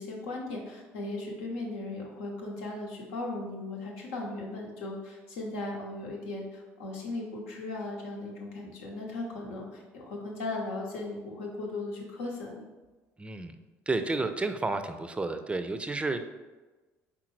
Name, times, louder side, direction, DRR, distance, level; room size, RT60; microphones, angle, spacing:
voice 1, 0.0-12.6, left 2 dB, 80° left, -1 dB, 0.9 m, -37 dB
voice 2, 13.2-13.5 13.9-16.3, right 3 dB, 15° right, 9 dB, 0.4 m, -31 dB
4.6 x 3.6 x 3.1 m, 1.2 s
hypercardioid pair, 60°, 7 cm